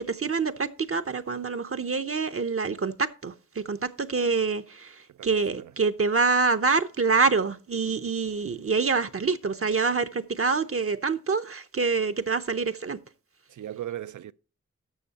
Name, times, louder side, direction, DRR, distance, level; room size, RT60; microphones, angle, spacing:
voice 1, 0.0-13.0, right 4 dB, 50° right, 0.7 m, -26 dB
voice 2, 13.5-14.3, right 12 dB, 85° right, 0.5 m, -37 dB
13.5 x 6.2 x 2.8 m
wide cardioid pair, 65°, 29 cm